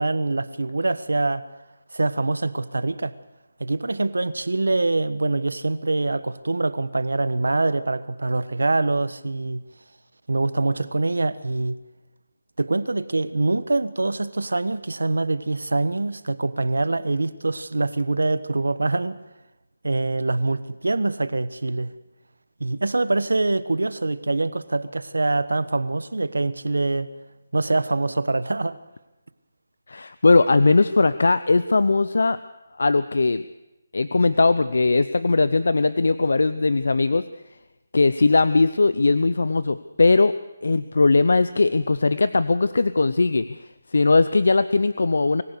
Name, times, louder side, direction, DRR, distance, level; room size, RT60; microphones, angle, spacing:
voice 1, 0.0-1.4 1.9-3.1 3.6-9.6 10.3-11.8 12.6-19.2 19.8-21.9 22.6-27.1 27.5-28.8, right 2 dB, 90° right, 14 dB, 1.2 m, -24 dB
voice 2, 29.9-32.4 32.8-33.4 33.9-37.3 37.9-40.3 40.6-43.6 43.9-45.4, left 3 dB, 70° left, 14 dB, 0.7 m, -19 dB
25.0 x 15.5 x 6.7 m, 0.99 s
figure-of-eight pair, 165°, 0 cm